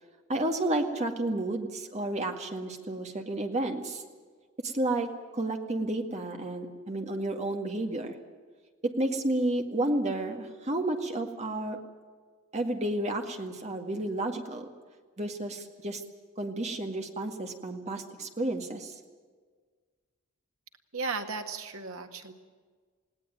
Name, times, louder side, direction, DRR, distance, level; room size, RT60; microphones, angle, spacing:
voice 1, 0.3-4.0 4.6-8.2 8.8-11.8 12.5-14.7 15.2-16.0 16.4-19.0, right 1 dB, 35° right, 4 dB, 2.0 m, -31 dB
voice 2, 20.9-22.3, right 4 dB, 85° right, 5 dB, 1.9 m, -35 dB
20.0 x 18.0 x 9.2 m, 1.5 s
head